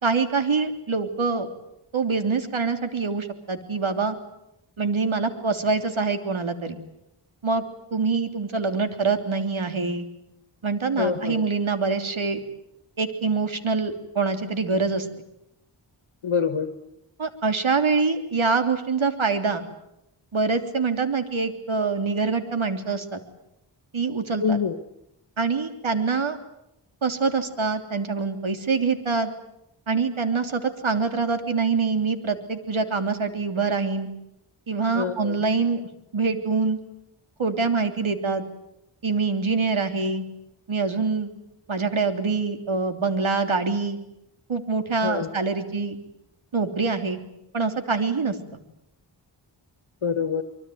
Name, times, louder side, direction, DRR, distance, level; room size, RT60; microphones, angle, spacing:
voice 1, 0.0-1.5 1.9-4.2 4.8-6.8 7.4-7.6 7.9-10.1 10.6-12.4 13.0-15.1 17.2-19.6 20.3-23.2 23.9-24.6 25.4-26.4 27.0-29.3 29.9-34.1 34.7-35.8 36.1-36.8 37.4-38.4 39.0-40.2 40.7-41.3 41.7-44.0 44.5-46.0 46.5-47.2 47.5-48.4, right 4 dB, 70° right, 7 dB, 3.4 m, -25 dB
voice 2, 11.0-11.4 16.2-16.7 24.4-24.8 35.0-35.4 45.0-45.3 50.0-50.4, left 6 dB, 70° left, 10 dB, 1.7 m, -25 dB
25.0 x 24.0 x 9.4 m, 0.83 s
cardioid pair, 45°, 50 cm